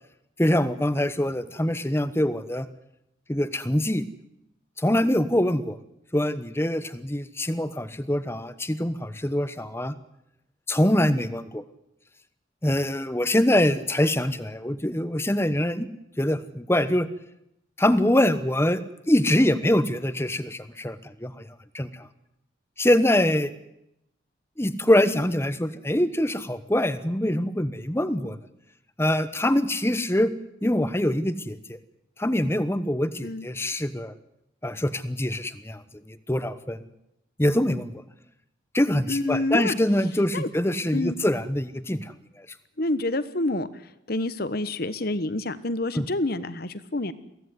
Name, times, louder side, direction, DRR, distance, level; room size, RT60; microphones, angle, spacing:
voice 1, 0.4-2.7 3.3-4.0 4.8-5.8 6.1-9.9 10.7-11.6 12.6-15.9 16.2-17.1 17.8-21.5 21.7-22.1 22.8-23.5 24.6-28.4 29.0-30.3 30.6-31.8 32.2-34.1 34.6-36.9 37.4-38.0 38.7-42.5 46.0-46.1, left 1 dB, 15° left, 13 dB, 1.1 m, -24 dB
voice 2, 39.1-39.7 40.3-40.5 40.9-41.2 42.8-47.1, left 2 dB, 50° left, 14 dB, 1.2 m, -28 dB
23.0 x 16.5 x 9.6 m, 0.83 s
head